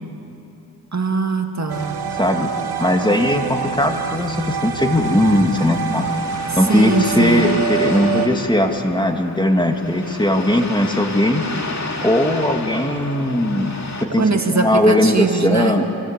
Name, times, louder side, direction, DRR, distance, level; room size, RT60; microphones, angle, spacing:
voice 1, 0.9-2.0 6.7-7.6 14.1-15.8, right 4 dB, 45° right, 5 dB, 1.8 m, -21 dB
sound 1, 1.7-8.3, right 8 dB, 90° right, 1.2 m, -26 dB
voice 2, 2.1-2.5 2.8-6.1 6.6-11.4 12.0-13.7 14.0-15.8, left 1 dB, 10° left, 4 dB, 2.3 m, -18 dB
sound 2, 4.9-14.1, left 3 dB, 45° left, 2.4 m, -31 dB
27.0 x 17.0 x 8.2 m, 2.9 s
cardioid pair, 40°, 39 cm